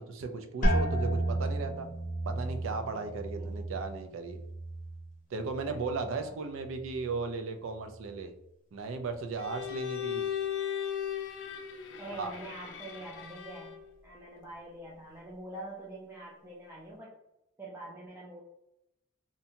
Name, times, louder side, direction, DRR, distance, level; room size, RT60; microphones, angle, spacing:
voice 1, 0.0-1.9 2.3-4.4 5.3-8.3 8.7-10.3 12.2-12.3, right 4 dB, 85° right, 7 dB, 0.4 m, -36 dB
sound 1, 0.6-6.3 6.6-7.3 7.8-8.2, right 1 dB, 40° left, 0.7 m, -33 dB
Bowed string instrument, 9.4-13.9, left 9 dB, 60° left, 0.3 m, -37 dB
voice 2, 12.0-13.7 14.0-17.1 17.6-18.4, right 1 dB, 10° right, -5 dB, 0.4 m, -45 dB
2.7 x 2.1 x 2.7 m, 0.85 s
head